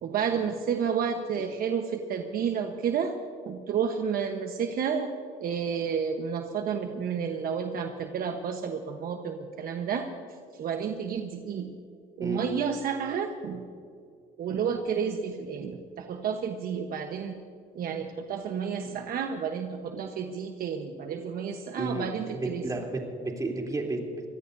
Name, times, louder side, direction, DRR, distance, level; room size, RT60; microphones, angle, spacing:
voice 1, 0.0-3.1 3.4-5.1 5.4-10.1 10.6-11.7 12.2-13.6 14.4-17.4 17.7-22.6, right 7 dB, 60° right, 5 dB, 1.2 m, -31 dB
voice 2, 21.8-24.3, right 2 dB, 20° right, 0 dB, 3.4 m, -32 dB
24.0 x 17.0 x 2.7 m, 2.4 s
cardioid pair, 110°, 17 cm